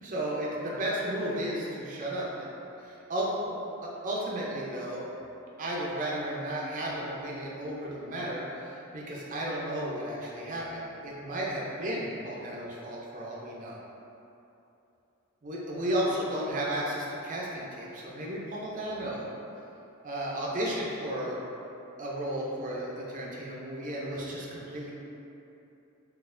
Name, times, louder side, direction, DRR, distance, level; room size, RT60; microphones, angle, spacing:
voice 1, 0.0-2.5 2.8-3.6 3.8-5.1 5.6-13.8 15.4-19.3 20.0-21.4 22.0-24.9, right 1 dB, 35° right, -4 dB, 0.5 m, -33 dB
4.1 x 2.4 x 2.5 m, 2.9 s
head